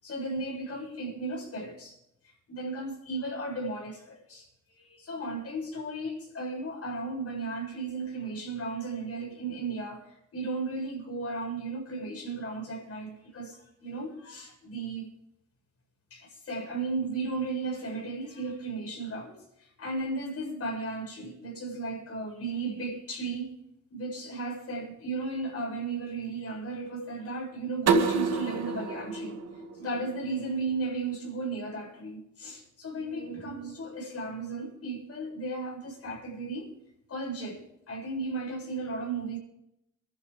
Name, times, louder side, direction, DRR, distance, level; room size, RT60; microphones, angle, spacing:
voice 1, 0.0-2.0 2.5-4.5 4.8-15.1 16.1-23.5 23.9-29.4 29.7-36.7 37.1-39.4, right 3 dB, 50° left, 0 dB, 7.7 m, -35 dB
sound 1, 27.9-30.7, right 5 dB, 60° right, 2.1 m, -29 dB
24.0 x 12.0 x 3.8 m, 0.82 s
cardioid pair, 90°, 30 cm